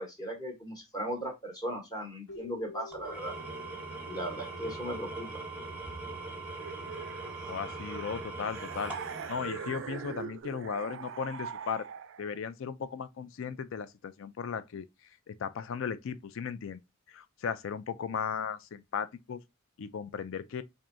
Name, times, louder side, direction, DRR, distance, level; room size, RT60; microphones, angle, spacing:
voice 1, 0.0-3.3 4.0-5.4, equal, 20° left, 0.9 m, -37 dB
Keyboard (musical), 2.3-5.5, left 3 dB, 80° left, 1.6 m, -50 dB
Engine / Tools, 2.9-10.4, right 2 dB, 5° right, 0.7 m, -41 dB
sound 1, 6.6-12.4, right 7 dB, 60° right, 0.3 m, -43 dB
voice 2, 7.5-9.0 9.3-11.9 12.2-16.8 17.1-19.4 19.8-20.6, left 6 dB, 60° left, 0.4 m, -36 dB
4.3 x 2.7 x 2.5 m
head